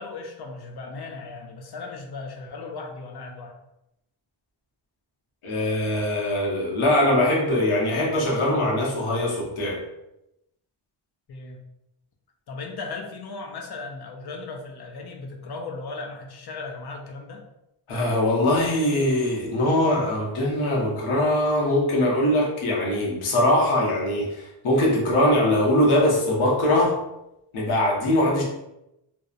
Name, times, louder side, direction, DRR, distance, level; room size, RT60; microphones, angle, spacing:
voice 1, 0.0-3.5 11.3-11.6 12.5-17.4, left 3 dB, 55° left, 2 dB, 0.5 m, -37 dB
voice 2, 5.4-9.8 17.9-27.0 27.5-28.4, left 1 dB, 85° left, -3 dB, 0.9 m, -22 dB
2.8 x 2.0 x 2.3 m, 0.87 s
wide cardioid pair, 120°, 48 cm